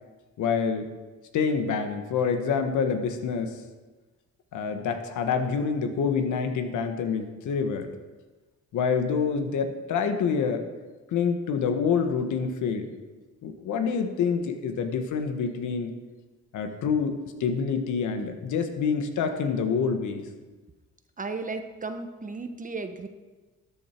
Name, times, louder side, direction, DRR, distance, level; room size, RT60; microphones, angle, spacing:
voice 1, 0.4-0.8 1.3-3.6 4.5-7.9 8.7-10.7 11.1-12.9 13.4-15.9 16.5-20.2, left 6 dB, 75° left, 6 dB, 1.4 m, -27 dB
voice 2, 21.2-23.1, right 3 dB, 25° right, 8 dB, 1.1 m, -34 dB
13.0 x 9.0 x 4.5 m, 1.3 s
cardioid pair, 90°, 30 cm